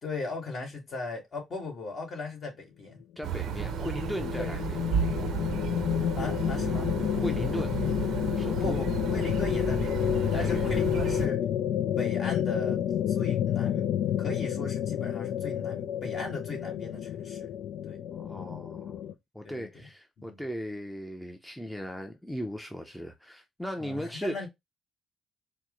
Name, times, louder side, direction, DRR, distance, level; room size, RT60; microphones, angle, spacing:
voice 1, 0.0-3.0 3.4-3.7 4.4-4.6 6.2-6.9 8.6-11.4 12.0-12.8 13.1-13.9 14.2-17.5 17.8-18.0 19.4-19.9 20.2-20.4 23.8-24.5, left 3 dB, 55° left, 2.1 m, -37 dB
voice 2, 3.2-4.8 7.1-7.8 8.4-8.8 10.2-10.9 18.1-19.1 19.3-24.5, equal, 5° left, 0.6 m, -37 dB
sound 1, 3.2-11.3, right 8 dB, 75° right, 0.6 m, -33 dB
sound 2, 3.3-19.1, left 10 dB, 75° left, 0.3 m, -30 dB
4.5 x 2.1 x 3.8 m
cardioid pair, 90°, 0 cm